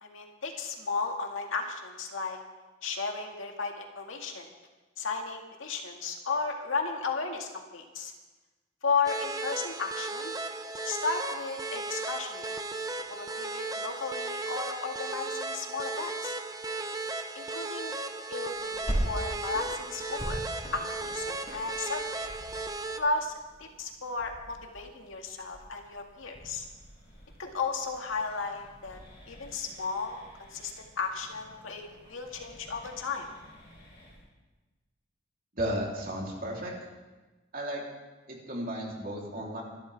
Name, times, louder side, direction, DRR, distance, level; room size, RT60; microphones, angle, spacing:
voice 1, 0.0-2.4 2.8-4.5 5.0-8.1 8.8-10.3 10.8-12.6 13.1-16.3 17.3-18.0 18.3-20.4 20.7-22.4 23.0-23.3 23.6-26.7 27.4-29.0 29.3-33.3, left 4 dB, 75° left, 2 dB, 2.0 m, -34 dB
sound 1, 9.0-23.0, right 3 dB, 15° right, 0.6 m, -36 dB
sound 2, 18.5-34.2, equal, 30° left, 6.5 m, -42 dB
voice 2, 35.5-36.7 37.5-37.8 38.3-39.6, equal, 45° right, -2 dB, 3.4 m, -34 dB
25.5 x 12.5 x 3.5 m, 1.2 s
head